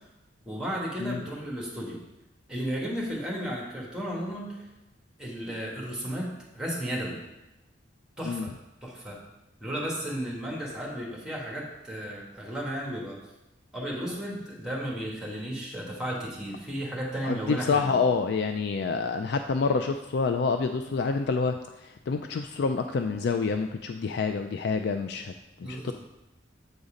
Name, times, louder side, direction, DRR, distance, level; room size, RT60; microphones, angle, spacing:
voice 1, 0.4-2.0 2.5-4.7 5.2-6.3 6.5-7.2 8.2-8.5 8.8-9.2 9.6-13.2 13.7-18.1 25.6-25.9, equal, 5° right, -2 dB, 1.5 m, -34 dB
voice 2, 17.2-21.5 22.1-25.3 25.6-25.9, left 4 dB, 60° left, 7 dB, 0.4 m, -27 dB
8.1 x 4.1 x 5.0 m, 0.95 s
head